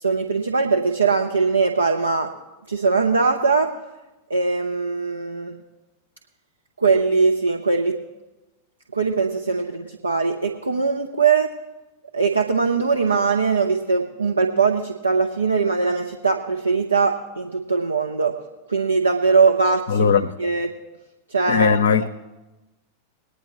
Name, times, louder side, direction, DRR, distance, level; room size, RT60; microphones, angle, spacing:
voice 1, 0.0-2.3 2.7-3.7 4.3-5.5 6.8-8.0 8.9-11.5 12.1-18.4 18.7-20.1 20.4-20.7 21.3-22.1, right 4 dB, 80° right, 0.8 m, -21 dB
voice 2, 19.9-20.3 21.5-22.1, left 6 dB, 60° left, 0.5 m, -18 dB
21.5 x 9.7 x 3.0 m
figure-of-eight pair, 90°, 0 cm